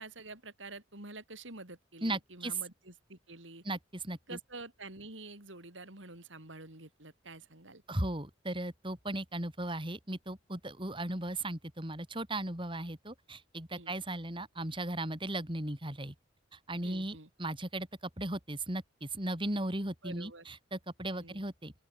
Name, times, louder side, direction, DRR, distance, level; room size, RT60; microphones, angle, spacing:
voice 1, 0.0-3.6 4.3-7.8 13.7-14.0 16.8-17.3 20.0-20.4 21.1-21.4, right 2 dB, 75° right, 6.2 m, -48 dB
voice 2, 2.0-2.6 3.6-4.4 7.9-16.1 16.5-17.9 18.2-21.7, right 1 dB, 25° right, 4.6 m, -37 dB
open air
head